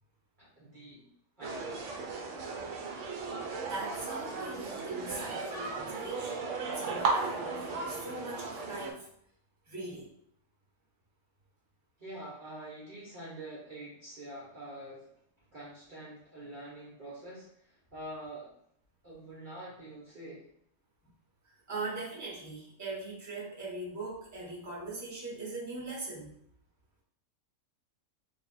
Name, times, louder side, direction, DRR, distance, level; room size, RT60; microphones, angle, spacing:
voice 1, 0.4-1.1 1.4-1.9 12.0-15.1 15.5-18.6 19.0-20.5, right 1 dB, 40° right, -7 dB, 0.9 m, -46 dB
sound 1, 1.4-8.9, right 4 dB, 65° right, 1.0 m, -36 dB
voice 2, 3.6-9.1 9.7-10.1 21.7-26.3, right 2 dB, 15° right, -5 dB, 0.9 m, -40 dB
3.3 x 2.3 x 4.1 m, 0.69 s
omnidirectional pair, 1.5 m